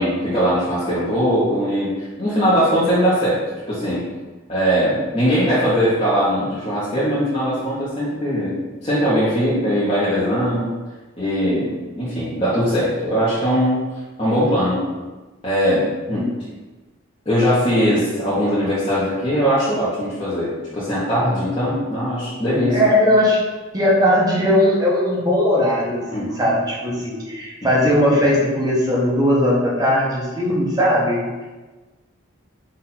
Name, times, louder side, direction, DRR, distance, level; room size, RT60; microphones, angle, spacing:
voice 1, 0.0-3.4 3.7-4.0 4.5-10.7 11.2-13.8 14.2-14.8 15.4-16.3 17.3-22.8 26.1-26.3, equal, 30° left, -11 dB, 0.9 m, -20 dB
voice 2, 22.7-23.4 23.7-31.4, left 1 dB, 20° right, -5 dB, 0.8 m, -18 dB
4.2 x 2.5 x 4.1 m, 1.2 s
head